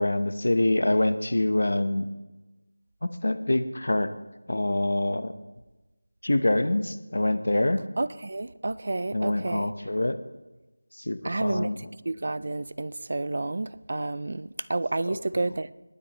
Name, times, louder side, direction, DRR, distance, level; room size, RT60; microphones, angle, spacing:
voice 1, 0.0-2.1 3.0-4.1 4.5-5.3 6.2-7.8 9.1-10.2 11.1-11.8, left 1 dB, 65° left, 0.9 m, -25 dB
voice 2, 8.0-9.7 11.2-15.7, right 2 dB, 35° right, 0.3 m, -30 dB
20.0 x 8.4 x 3.0 m
figure-of-eight pair, 180°, 0 cm